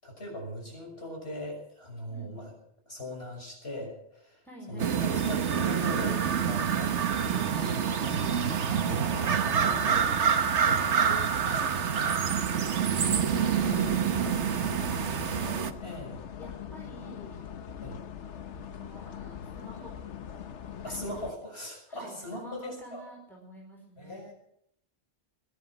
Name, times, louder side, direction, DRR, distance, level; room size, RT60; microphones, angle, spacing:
voice 1, 0.0-2.5 2.9-6.9 7.2-11.7 13.6-13.8 15.8-16.2 17.8-18.0 20.8-23.1 24.0-24.3, equal, 60° left, 1 dB, 6.6 m, -40 dB
voice 2, 4.4-5.2 9.0-9.8 12.3-12.5 12.8-15.8 16.4-17.4 18.5-19.9 21.9-24.2, equal, ahead, -2 dB, 4.4 m, -48 dB
sound 1, 4.8-15.7, right 7 dB, 90° right, 1.3 m, -27 dB
sound 2, 12.9-21.3, left 8 dB, 90° left, 1.2 m, -41 dB
21.5 x 11.0 x 6.1 m, 0.71 s
omnidirectional pair, 1.2 m